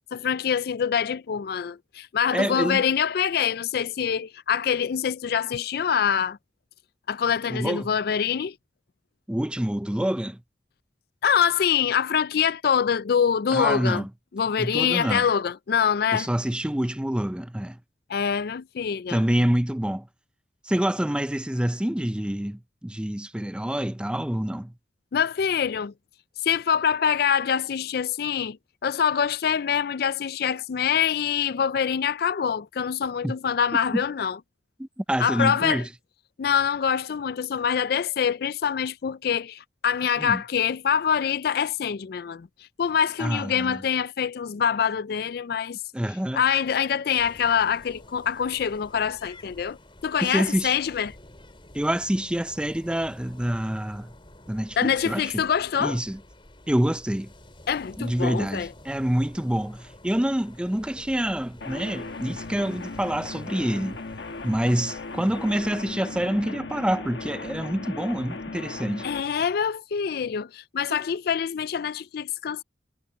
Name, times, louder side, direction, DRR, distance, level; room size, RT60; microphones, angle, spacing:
voice 1, 0.1-6.4 7.1-8.5 11.2-14.0 14.3-16.3 18.1-19.2 25.1-25.9 26.4-28.6 28.8-34.4 35.2-35.9 36.4-42.5 42.8-45.8 46.3-49.8 50.0-51.1 54.8-56.0 57.7-58.7 69.0-72.6, left 7 dB, 60° left, 0.4 m, -25 dB
voice 2, 2.3-2.8 7.5-7.9 9.3-10.4 13.5-14.1 14.6-15.3 16.1-17.8 19.1-20.1 20.7-24.7 33.2-33.3 33.9-34.0 34.8-35.9 40.2-40.4 43.2-43.8 45.9-46.4 50.2-50.7 51.7-54.1 54.5-55.4 55.8-56.2 56.7-57.3 58.0-64.0 64.4-69.0, right 1 dB, 5° right, 0.5 m, -27 dB
sound 1, 47.2-66.0, left 1 dB, 30° left, 3.9 m, -50 dB
sound 2, 61.6-69.2, left 3 dB, 75° left, 1.3 m, -37 dB
head